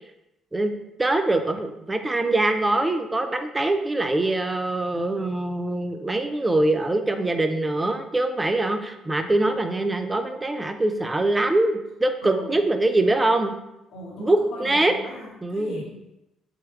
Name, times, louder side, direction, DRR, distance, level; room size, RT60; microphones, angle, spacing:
voice 1, 1.0-13.5 14.2-14.9 15.4-15.8, right 2 dB, 20° right, 6 dB, 0.3 m, -23 dB
voice 2, 12.2-12.6 13.9-16.2, left 1 dB, 80° left, -3 dB, 0.9 m, -39 dB
3.2 x 2.8 x 2.4 m, 0.92 s
supercardioid pair, 65°, 0 cm